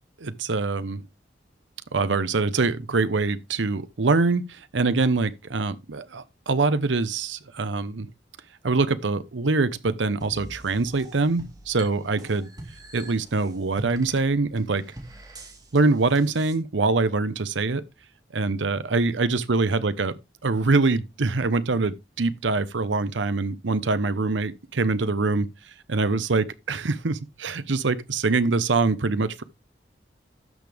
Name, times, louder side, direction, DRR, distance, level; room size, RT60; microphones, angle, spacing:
voice 1, 0.2-1.0 1.9-8.1 8.6-12.5 12.9-14.8 15.7-17.8 18.3-20.1 20.4-25.5 25.9-29.4, right 3 dB, 90° right, 0.8 m, -24 dB
sound 1, 10.2-16.6, right 1 dB, 20° right, 2.3 m, -44 dB
12.5 x 6.9 x 3.5 m
head